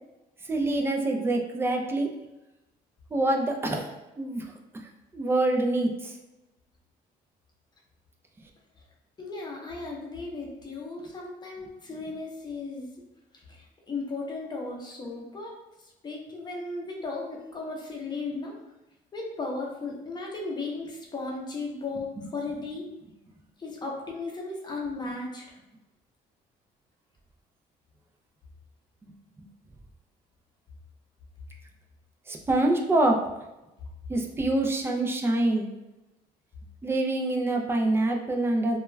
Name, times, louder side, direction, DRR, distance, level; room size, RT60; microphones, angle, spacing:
voice 1, 0.5-2.1 3.1-3.9 4.2-4.5 5.1-6.1 12.0-12.1 22.2-22.3 32.3-33.2 34.1-35.7 36.8-38.8, right 2 dB, 15° right, 2 dB, 0.3 m, -25 dB
voice 2, 9.2-13.0 13.3-15.5 16.0-18.6 19.1-22.9 23.6-25.5, left 3 dB, 25° left, -1 dB, 0.6 m, -36 dB
2.2 x 2.1 x 3.1 m, 0.98 s
cardioid pair, 110°, 17 cm